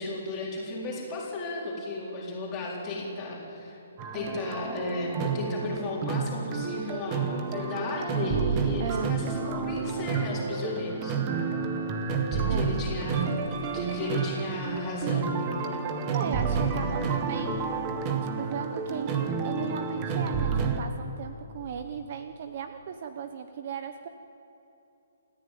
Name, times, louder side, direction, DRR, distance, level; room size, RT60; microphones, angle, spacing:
voice 1, 0.0-3.8 4.1-11.2 12.3-13.4 13.7-15.3 16.7-17.0, left 2 dB, 15° left, -5 dB, 4.2 m, -34 dB
sound 1, 4.0-20.8, right 5 dB, 15° right, 1.2 m, -30 dB
voice 2, 8.8-9.1 12.4-12.7 16.1-24.1, right 7 dB, 30° right, 8 dB, 0.8 m, -36 dB
sound 2, 11.3-17.4, right 2 dB, 50° right, 6.1 m, -48 dB
29.0 x 14.0 x 9.2 m, 2.9 s
hypercardioid pair, 180°, 0 cm